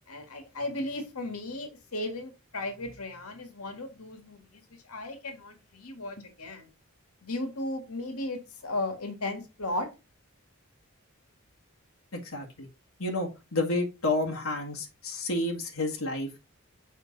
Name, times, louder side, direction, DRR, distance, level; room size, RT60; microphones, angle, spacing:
voice 1, 0.1-6.7 7.2-9.9, left 2 dB, 85° left, 5 dB, 1.9 m, -36 dB
voice 2, 12.1-12.7 13.0-16.4, left 2 dB, 70° left, 0 dB, 1.8 m, -30 dB
7.4 x 5.3 x 4.0 m, 0.26 s
head